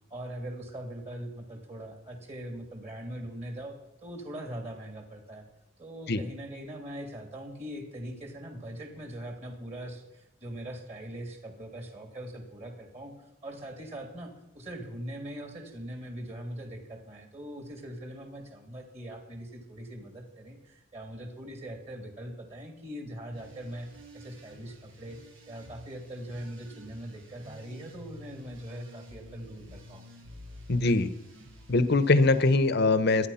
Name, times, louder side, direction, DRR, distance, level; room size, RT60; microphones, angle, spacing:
voice 1, 0.1-3.8 4.0-5.5 5.8-13.1 13.4-23.9 24.1-25.2 25.5-30.1, right 1 dB, 35° right, 4 dB, 2.9 m, -41 dB
sound 1, 23.3-32.5, equal, 90° right, 6.4 m, -50 dB
voice 2, 30.7-31.1 31.7-33.3, left 2 dB, 55° left, 13 dB, 1.0 m, -22 dB
25.5 x 9.7 x 5.7 m, 0.81 s
head